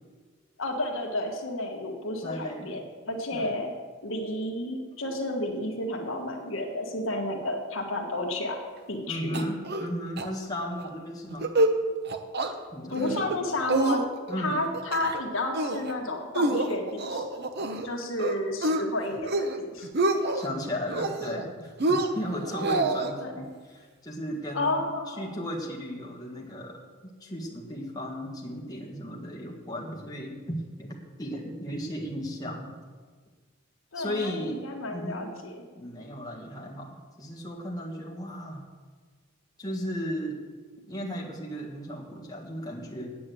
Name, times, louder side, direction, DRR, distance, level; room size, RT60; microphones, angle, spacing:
voice 1, 0.6-3.7 4.0-8.6 8.9-9.4 12.9-14.1 14.4-17.4 17.8-19.9 23.2-23.4 24.5-25.3 33.9-35.5, left 1 dB, 65° left, 2 dB, 1.6 m, -31 dB
voice 2, 2.2-2.8 3.3-3.6 9.1-11.5 12.7-13.5 14.3-14.6 20.3-26.8 27.2-32.8 33.9-34.6 34.9-35.3 35.7-38.6 39.6-40.4 40.9-43.1, equal, 20° left, -2 dB, 1.7 m, -35 dB
sound 1, 9.3-9.9 10.2-10.3 10.6-10.9 11.3-11.8 12.1-12.5 12.9-13.4 13.7-14.4 14.7-15.2 15.5-15.9 16.4-17.9 18.2-18.8 19.2-19.6 19.8-20.5 20.9-21.5 21.8-23.1, right 2 dB, 50° right, 0.9 m, -27 dB
8.6 x 8.5 x 8.4 m, 1.4 s
head